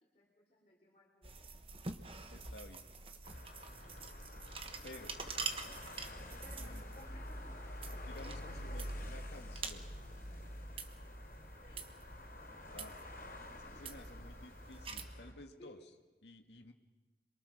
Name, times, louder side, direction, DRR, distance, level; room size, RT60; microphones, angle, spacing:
voice 1, 0.0-1.6 3.8-4.2 4.9-5.8 6.4-7.6 8.0-8.9 11.6-11.9 13.7-13.8 15.2-15.3 15.6-15.9, equal, 35° left, -3 dB, 3.7 m, -61 dB
sound 1, 1.2-15.0, right 4 dB, 30° right, 1.2 m, -47 dB
voice 2, 2.3-2.9 4.8-5.1 6.6-6.8 8.0-9.9 12.7-13.0 13.7-15.8 16.2-16.7, left 2 dB, 80° left, 4 dB, 2.1 m, -53 dB
sound 2, 3.1-3.5 3.9-7.1 7.4-10.5, right 1 dB, 85° right, 2.5 m, -64 dB
sound 3, 3.2-15.3, left 1 dB, 50° left, 3.9 m, -48 dB
27.5 x 23.0 x 6.6 m, 1.2 s
head